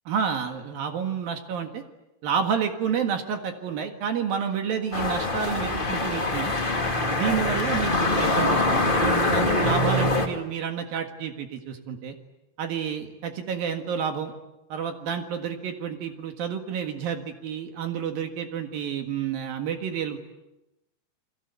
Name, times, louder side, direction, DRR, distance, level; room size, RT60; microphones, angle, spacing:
voice 1, 0.1-1.8 2.2-6.5 7.0-12.1 12.6-14.3 14.7-20.2, right 7 dB, 60° right, 6 dB, 3.1 m, -29 dB
sound 1, 4.9-10.3, left 2 dB, 20° left, 1.2 m, -24 dB
29.0 x 23.0 x 8.3 m, 0.94 s
omnidirectional pair, 5.2 m